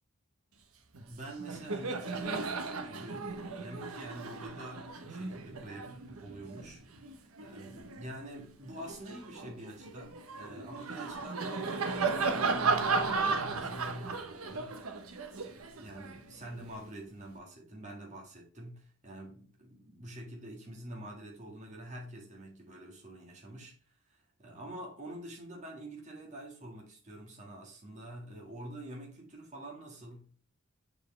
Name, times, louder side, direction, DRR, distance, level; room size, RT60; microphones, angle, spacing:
Laughter, 0.9-1.1 1.4-8.1 8.6-16.8, right 4 dB, 90° right, 0.9 m, -35 dB
voice 1, 1.1-14.8 15.4-30.5, right 1 dB, 35° right, 1.7 m, -46 dB
6.6 x 4.4 x 3.2 m
head